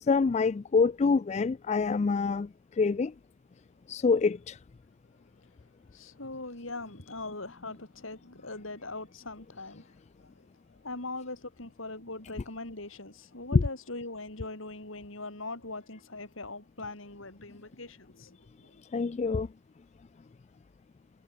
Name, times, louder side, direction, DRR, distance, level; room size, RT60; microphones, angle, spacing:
voice 1, 0.1-2.5 2.8-3.1 3.9-4.6 13.5-13.6 18.9-19.5, left 4 dB, 35° left, 0.3 m, -25 dB
voice 2, 5.1-5.5 5.9-18.8, left 2 dB, 70° left, 4.7 m, -41 dB
head